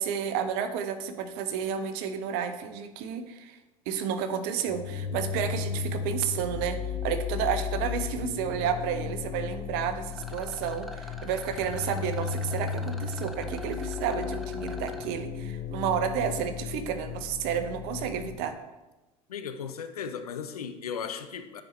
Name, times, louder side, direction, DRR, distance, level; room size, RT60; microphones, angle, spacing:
voice 1, 0.0-3.6 3.9-18.6, right 8 dB, 60° right, 9 dB, 0.8 m, -31 dB
sound 1, 4.7-18.3, left 7 dB, 30° left, 0.8 m, -35 dB
Rattle, 10.1-15.1, left 1 dB, ahead, 0.8 m, -45 dB
voice 2, 19.3-21.6, left 7 dB, 80° left, 10 dB, 0.6 m, -36 dB
9.5 x 5.0 x 3.2 m, 1.1 s
figure-of-eight pair, 65°, 19 cm